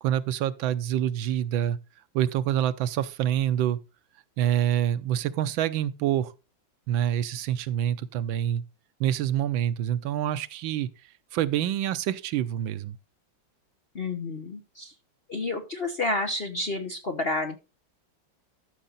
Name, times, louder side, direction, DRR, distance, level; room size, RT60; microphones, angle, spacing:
voice 1, 0.0-1.8 2.1-3.8 4.4-6.3 6.9-8.6 9.0-10.9 11.3-13.0, right 11 dB, 85° right, 1.5 m, -26 dB
voice 2, 13.9-14.9 15.3-17.6, left 2 dB, 40° left, 1.0 m, -30 dB
13.0 x 6.5 x 4.0 m
omnidirectional pair, 2.1 m